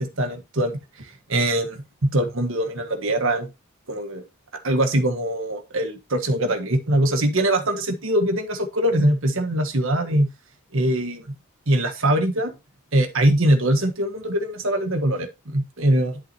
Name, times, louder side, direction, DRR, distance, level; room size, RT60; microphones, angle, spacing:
voice 1, 0.0-3.5 3.9-4.2 4.6-10.3 10.7-11.2 11.7-12.5 12.9-16.2, right 1 dB, 65° right, 6 dB, 1.5 m, -22 dB
11.0 x 6.1 x 2.9 m, 0.25 s
head